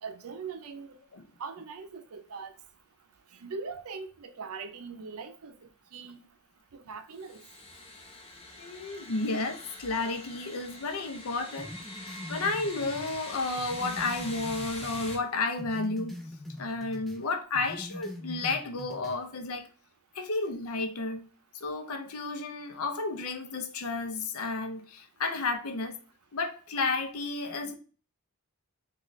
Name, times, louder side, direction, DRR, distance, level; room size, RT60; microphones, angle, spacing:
voice 1, 0.0-1.0 1.4-2.5 3.4-6.2 6.7-7.4, right 5 dB, 85° right, 0.5 m, -41 dB
sound 1, 7.2-15.2, left 2 dB, 25° left, 0.7 m, -44 dB
voice 2, 8.6-11.7 12.3-16.1 16.6-19.7 20.1-21.3 21.5-26.0 26.3-27.8, left 3 dB, 80° left, 0.6 m, -32 dB
sound 2, 11.6-15.3 15.6-17.2 17.5-19.2, left 1 dB, ahead, 0.3 m, -43 dB
4.0 x 2.4 x 3.1 m
head